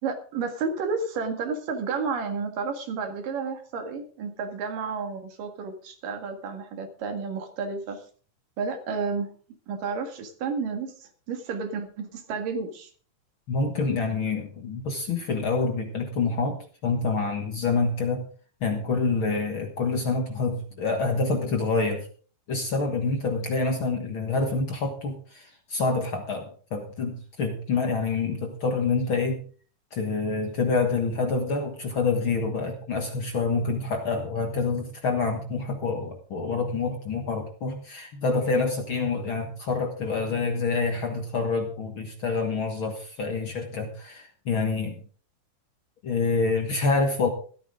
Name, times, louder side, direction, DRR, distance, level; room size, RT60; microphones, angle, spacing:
voice 1, 0.0-8.0 8.6-9.3 9.7-12.9, right 5 dB, 75° right, 5 dB, 3.6 m, -31 dB
voice 2, 13.5-18.3 18.6-22.1 22.5-29.4 29.9-45.0 46.0-47.3, left 4 dB, 50° left, 4 dB, 1.8 m, -27 dB
15.0 x 13.5 x 3.8 m, 0.42 s
omnidirectional pair, 3.8 m